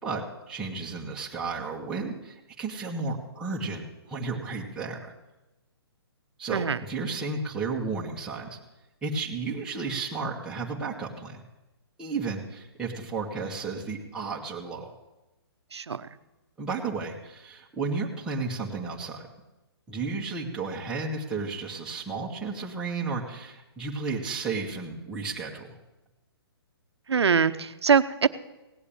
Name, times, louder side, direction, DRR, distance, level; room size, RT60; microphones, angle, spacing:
voice 1, 0.0-5.1 6.4-8.6 9.0-11.4 12.0-14.9 16.6-19.3 19.9-25.7, right 4 dB, 5° right, -5 dB, 1.9 m, -33 dB
voice 2, 15.7-16.1 27.1-28.3, right 6 dB, 90° right, 12 dB, 1.0 m, -23 dB
17.5 x 8.3 x 8.8 m, 1.0 s
hypercardioid pair, 155°, 14 cm